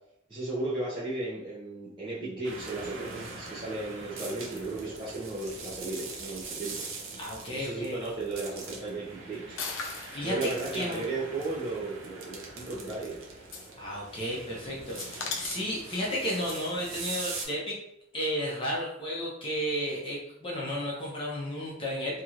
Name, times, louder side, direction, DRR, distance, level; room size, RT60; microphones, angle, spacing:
voice 1, 0.3-6.8 7.5-9.6 10.2-13.2, right 2 dB, 25° right, -10 dB, 0.7 m, -35 dB
sound 1, 2.4-17.5, right 3 dB, 75° right, 0.6 m, -42 dB
voice 2, 7.2-8.0 10.1-11.2 13.8-17.8 18.1-22.2, equal, 25° left, -4 dB, 0.7 m, -33 dB
sound 2, 9.5-10.2 12.0-12.1 13.4-13.7 14.1-14.4 14.9-15.7 16.4-16.6, left 4 dB, 70° left, 0.5 m, -37 dB
2.9 x 2.8 x 2.4 m, 0.79 s
head